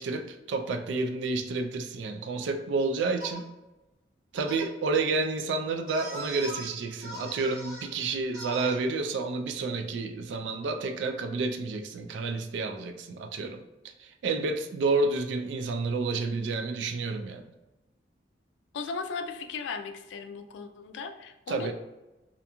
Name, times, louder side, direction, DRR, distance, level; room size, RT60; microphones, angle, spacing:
voice 1, 0.0-3.5 4.3-13.6 14.0-17.5 21.5-21.7, right 3 dB, 80° right, 0.3 m, -30 dB
sound 1, 3.2-3.4 4.4-4.7 5.9-6.7 7.0-7.9 8.3-8.8, equal, 55° right, 1.1 m, -40 dB
voice 2, 18.7-21.7, left 5 dB, 90° left, 0.3 m, -37 dB
2.8 x 2.5 x 2.2 m
head